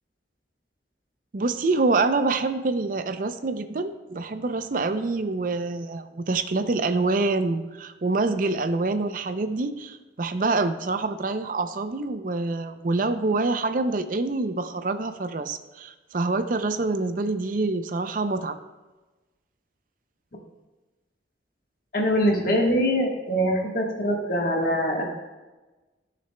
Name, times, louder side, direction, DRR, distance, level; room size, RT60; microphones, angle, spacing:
voice 1, 1.3-18.6, right 3 dB, 50° right, 10 dB, 0.5 m, -26 dB
voice 2, 21.9-25.1, equal, 50° left, 0 dB, 1.4 m, -23 dB
13.5 x 6.6 x 2.2 m, 1.2 s
head